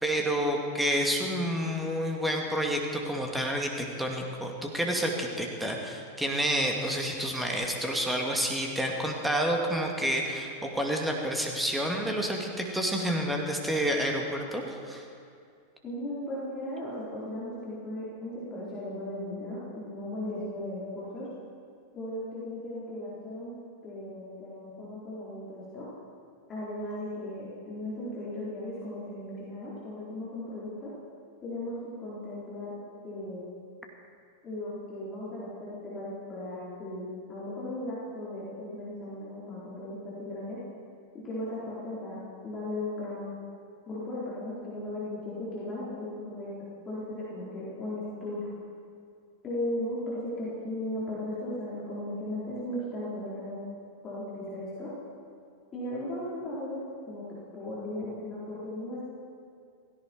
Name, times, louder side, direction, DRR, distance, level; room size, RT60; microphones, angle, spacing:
voice 1, 0.0-15.0, equal, 5° right, 1 dB, 2.2 m, -29 dB
voice 2, 15.8-21.3 21.9-23.5 23.8-25.9 26.5-30.9 31.4-32.7 33.0-33.4 34.4-40.6 41.2-42.2 42.4-43.4 43.9-46.5 46.8-48.5 49.4-53.6 54.0-54.9 55.7-57.2 57.5-59.0, left 1 dB, 25° left, -9 dB, 4.4 m, -36 dB
17.0 x 16.5 x 4.6 m, 2.3 s
figure-of-eight pair, 90°, 0 cm